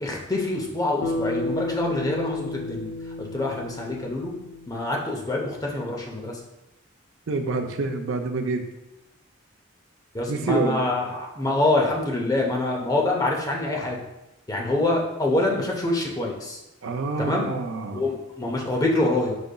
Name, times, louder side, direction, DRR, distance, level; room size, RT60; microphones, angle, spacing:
voice 1, 0.0-2.9 3.2-4.3 4.7-6.4 10.1-14.0 14.5-16.6 17.2-17.5 17.9-19.4, left 2 dB, 20° left, -1 dB, 0.6 m, -25 dB
Bass guitar, 1.0-5.4, left 2 dB, 60° left, 0.4 m, -32 dB
voice 2, 7.3-8.6 10.3-10.8 14.8-14.9 16.8-18.0, right 3 dB, 70° right, 5 dB, 0.5 m, -27 dB
5.0 x 3.9 x 2.2 m, 0.96 s
head